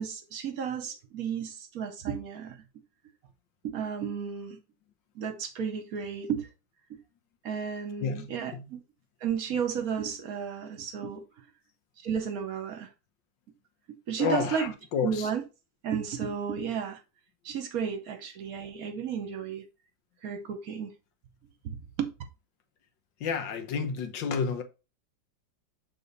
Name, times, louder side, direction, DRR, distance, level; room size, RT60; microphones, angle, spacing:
voice 1, 0.0-2.6 3.6-4.6 5.1-6.5 6.9-7.0 7.4-8.8 9.2-11.2 12.0-12.9 14.1-14.7 15.0-15.4 15.8-17.0 17.4-19.6 20.2-20.9 21.6-22.1, right 7 dB, 60° right, 1.2 m, -33 dB
voice 2, 8.0-8.7 14.2-15.3 23.2-24.6, left 6 dB, 90° left, 1.7 m, -30 dB
6.8 x 4.1 x 4.0 m
omnidirectional pair, 1.9 m